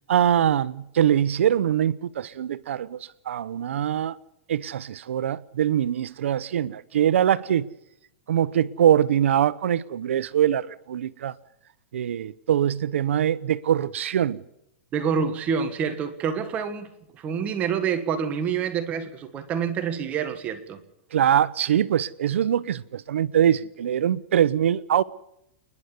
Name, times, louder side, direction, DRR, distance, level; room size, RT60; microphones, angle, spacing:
voice 1, 0.1-4.2 4.5-7.7 8.3-11.3 11.9-14.4 21.1-25.0, right 10 dB, 85° right, 1.0 m, -23 dB
voice 2, 14.9-20.8, right 7 dB, 20° right, 1.5 m, -27 dB
29.0 x 11.0 x 9.8 m
supercardioid pair, 165°, 7 cm